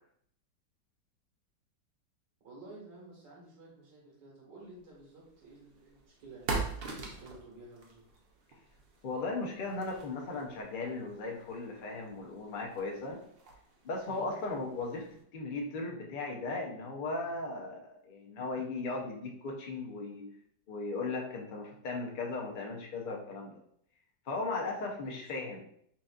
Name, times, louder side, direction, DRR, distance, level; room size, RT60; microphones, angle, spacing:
voice 1, 2.4-6.6 6.9-8.0 14.0-14.3 25.0-25.1, right 2 dB, 80° right, -4 dB, 2.0 m, -52 dB
sound 1, 4.9-15.2, right 3 dB, 60° right, 0.6 m, -44 dB
voice 2, 9.0-13.2 13.8-20.2 20.7-23.5 24.3-25.6, left 3 dB, 90° left, 0 dB, 0.4 m, -37 dB
5.7 x 2.6 x 2.4 m, 0.67 s
omnidirectional pair, 1.9 m